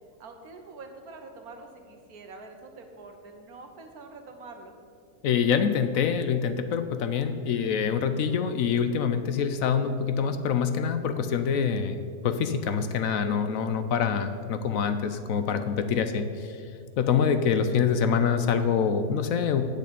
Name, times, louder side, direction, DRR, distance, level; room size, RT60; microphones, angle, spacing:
voice 1, 0.2-4.7 14.0-14.3, right 3 dB, 70° right, 5 dB, 1.5 m, -45 dB
voice 2, 5.2-16.6 17.0-19.6, left 7 dB, 70° left, 9 dB, 0.9 m, -25 dB
8.3 x 6.6 x 8.4 m, 2.2 s
omnidirectional pair, 1.7 m